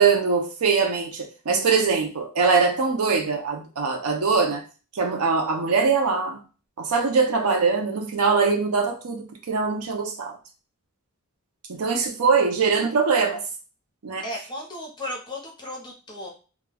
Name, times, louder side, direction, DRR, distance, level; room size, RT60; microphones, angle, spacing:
voice 1, 0.0-4.6 4.9-6.4 6.8-10.4 11.7-13.4 14.0-14.3, right 5 dB, 80° right, 3 dB, 0.6 m, -22 dB
voice 2, 14.2-16.3, left 1 dB, 20° left, -1 dB, 0.7 m, -35 dB
2.3 x 2.2 x 3.3 m, 0.35 s
head